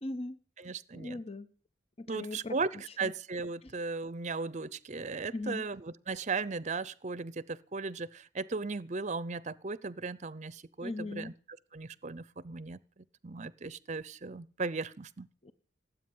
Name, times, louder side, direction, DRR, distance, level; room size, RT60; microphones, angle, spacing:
voice 1, 0.0-0.4 0.9-1.5 2.0-2.6 3.0-3.1 3.6-3.7 5.3-5.6 10.8-11.3 15.4-15.5, left 2 dB, 35° left, 0.9 m, -39 dB
voice 2, 0.6-1.2 2.1-11.3 11.7-15.3, right 4 dB, 40° right, 0.7 m, -37 dB
18.0 x 8.5 x 9.4 m
head